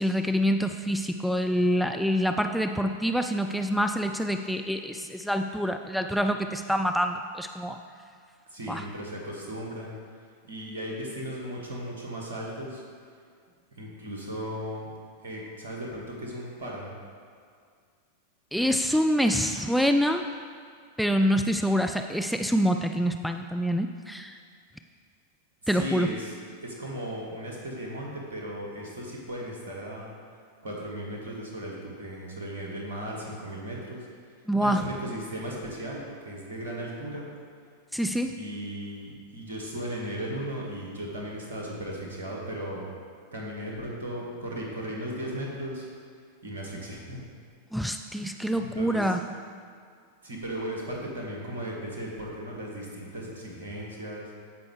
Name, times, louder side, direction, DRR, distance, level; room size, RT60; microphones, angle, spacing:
voice 1, 0.0-7.8 8.7-8.8 18.5-20.2 21.0-24.3 25.7-26.1 34.5-34.9 37.9-38.3 47.7-49.2, equal, ahead, 5 dB, 0.3 m, -26 dB
voice 2, 8.5-10.0 10.4-12.8 13.8-14.9 15.2-16.9 25.6-26.3 26.6-30.1 30.6-34.1 34.6-37.3 38.3-42.9 43.3-45.9 46.4-47.2 48.5-49.1 50.2-54.3, equal, 65° right, -2 dB, 1.8 m, -36 dB
15.0 x 5.3 x 3.3 m, 2.2 s
figure-of-eight pair, 90°, 0 cm